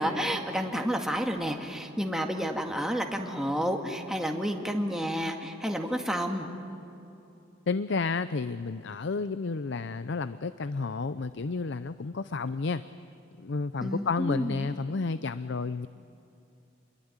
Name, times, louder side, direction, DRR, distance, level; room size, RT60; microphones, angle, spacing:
voice 1, 0.0-6.5 13.8-14.7, equal, 5° right, 3 dB, 1.9 m, -30 dB
voice 2, 7.7-12.8 13.4-15.9, left 4 dB, 65° left, 13 dB, 0.6 m, -31 dB
27.5 x 21.5 x 9.6 m, 2.7 s
head